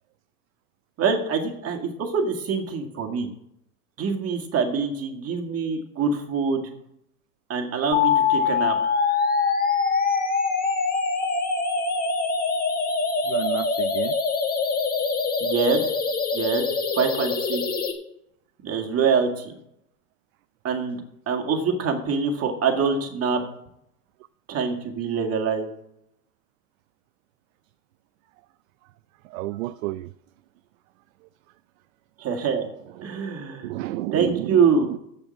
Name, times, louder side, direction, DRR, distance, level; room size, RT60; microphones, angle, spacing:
voice 1, 1.0-3.3 4.0-6.7 7.5-8.8 15.4-15.9 16.3-16.7 16.9-17.6 18.6-19.5 20.6-21.0 21.3-23.4 24.5-25.7 32.2-32.7 33.0-33.8 34.1-34.9, right 5 dB, 30° right, 2.1 m, -25 dB
sound 1, 7.9-17.9, left 5 dB, 20° left, 1.5 m, -24 dB
voice 2, 13.3-14.1 29.3-30.1 33.0-33.1 33.6-35.0, right 17 dB, 60° right, 0.5 m, -31 dB
8.2 x 7.1 x 8.5 m
hypercardioid pair, 105°, 47 cm